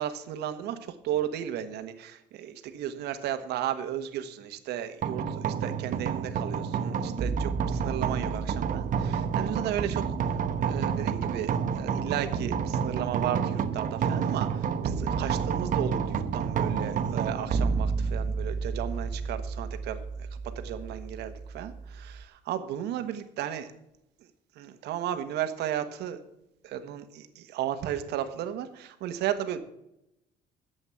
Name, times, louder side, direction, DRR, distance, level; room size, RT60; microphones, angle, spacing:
voice 1, 0.0-23.7 24.5-26.2 26.6-29.6, right 10 dB, 80° right, 9 dB, 1.3 m, -34 dB
sound 1, 5.0-22.2, right 6 dB, 50° right, 1.0 m, -30 dB
11.0 x 8.0 x 7.1 m, 0.83 s
cardioid pair, 110°, 17 cm